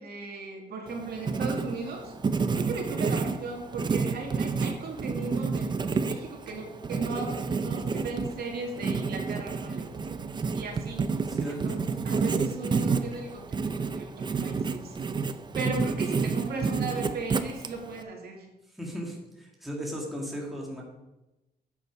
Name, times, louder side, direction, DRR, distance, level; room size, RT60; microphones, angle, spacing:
voice 1, 0.0-2.1 2.6-9.9 10.5-11.1 11.5-11.8 12.0-15.0 15.5-18.5, right 3 dB, 65° right, 1 dB, 2.2 m, -37 dB
Writing, 0.9-18.0, right 4 dB, 25° right, 0.5 m, -30 dB
voice 2, 11.3-11.8 18.8-20.8, equal, ahead, -3 dB, 2.1 m, -36 dB
10.0 x 8.1 x 4.7 m, 0.98 s
wide cardioid pair, 170°, 18 cm